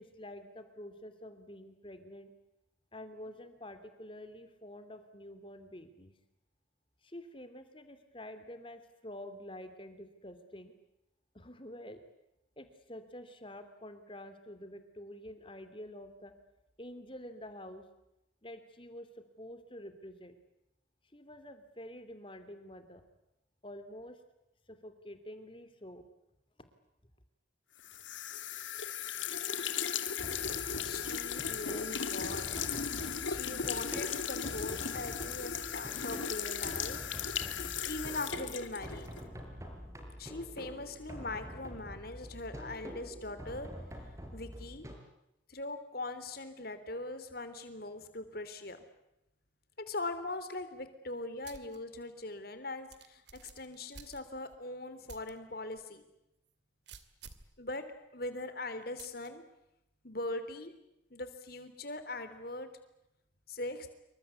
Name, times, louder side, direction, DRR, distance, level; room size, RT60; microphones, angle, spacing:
voice 1, 0.0-2.3 2.9-6.1 7.0-10.7 11.3-12.0 12.6-16.3 16.8-17.8 18.4-20.3 21.1-23.0 23.6-24.2 24.7-26.1 26.6-26.7, left 1 dB, 25° left, 9 dB, 2.9 m, -48 dB
sound 1, 27.8-39.2, left 7 dB, 80° left, 2.4 m, -37 dB
sound 2, 30.2-45.0, equal, 15° right, 4.7 m, -46 dB
voice 2, 30.8-32.5 33.3-37.0 37.8-39.1 40.2-43.7 44.3-44.8 45.5-48.8 49.9-53.2 53.5-56.0 57.6-57.8 58.1-59.4 60.0-60.7 61.1-62.7 63.5-63.9, left 2 dB, 50° left, 10 dB, 3.5 m, -41 dB
sound 3, 51.4-51.8 52.2-52.3 52.9-54.6 55.1-55.3 55.8-55.9 56.9-57.5 59.0-59.3, right 5 dB, 65° right, 2.4 m, -52 dB
27.5 x 24.5 x 8.4 m, 0.87 s
head